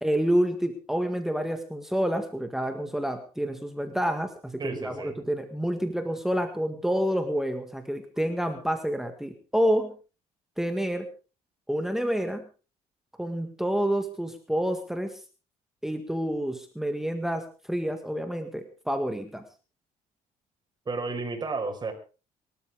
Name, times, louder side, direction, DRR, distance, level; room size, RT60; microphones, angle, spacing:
voice 1, 0.0-9.9 10.6-11.1 11.7-12.4 13.2-15.2 15.8-19.4, equal, 5° right, 6 dB, 1.8 m, -28 dB
voice 2, 4.6-5.2 20.9-21.9, right 3 dB, 30° right, 4 dB, 5.1 m, -32 dB
24.0 x 13.0 x 3.7 m, 0.35 s
cardioid pair, 110°, 15 cm